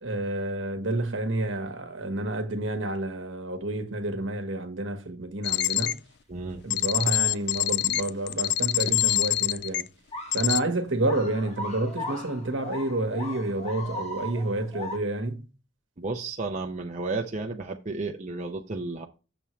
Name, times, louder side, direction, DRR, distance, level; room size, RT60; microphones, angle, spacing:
voice 1, 0.0-5.9 6.6-9.9 10.3-15.4, right 2 dB, 65° right, 1.3 m, -29 dB
sound 1, 5.4-5.9 6.7-9.8 10.3-10.6, left 13 dB, 55° left, 0.3 m, -25 dB
voice 2, 6.3-6.6 16.0-19.1, right 3 dB, 35° right, 0.7 m, -32 dB
sound 2, 10.1-10.5 11.0-15.0, left 1 dB, 30° left, 1.4 m, -38 dB
7.1 x 7.0 x 3.1 m
head